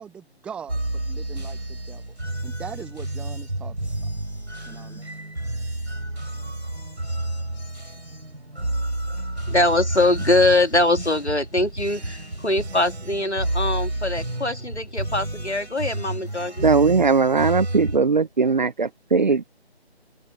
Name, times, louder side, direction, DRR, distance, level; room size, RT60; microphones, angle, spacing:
voice 1, 0.0-2.1 2.4-3.7 4.0-4.1 4.7-5.1, right 7 dB, 5° right, 1.3 m, -40 dB
sound 1, 0.7-18.0, right 1 dB, 80° right, 4.9 m, -30 dB
voice 2, 9.5-16.6, left 2 dB, 90° left, 2.2 m, -22 dB
voice 3, 16.6-19.4, right 4 dB, 45° right, 0.8 m, -19 dB
figure-of-eight pair, 150°, 33 cm